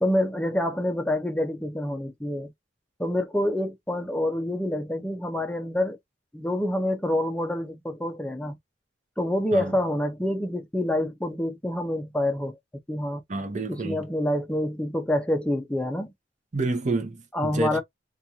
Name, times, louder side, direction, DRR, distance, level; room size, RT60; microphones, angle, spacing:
voice 1, 0.0-2.5 3.0-6.0 6.3-8.6 9.2-12.6 12.9-13.2 13.7-16.1 17.3-17.8, left 1 dB, 5° left, 0.5 m, -27 dB
voice 2, 13.3-14.0 16.5-17.8, right 2 dB, 40° right, 0.7 m, -28 dB
2.5 x 2.4 x 2.8 m
head